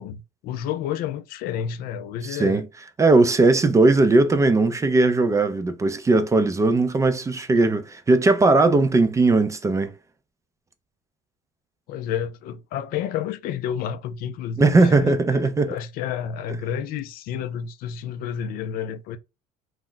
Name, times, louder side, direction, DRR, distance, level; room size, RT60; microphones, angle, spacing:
voice 1, 0.0-2.7 11.9-15.2 15.6-19.2, left 9 dB, 60° left, 0.4 m, -30 dB
voice 2, 2.3-2.7 3.0-9.9 14.6-15.7, right 3 dB, 20° right, 0.4 m, -18 dB
2.3 x 2.1 x 3.7 m
supercardioid pair, 95°, 17 cm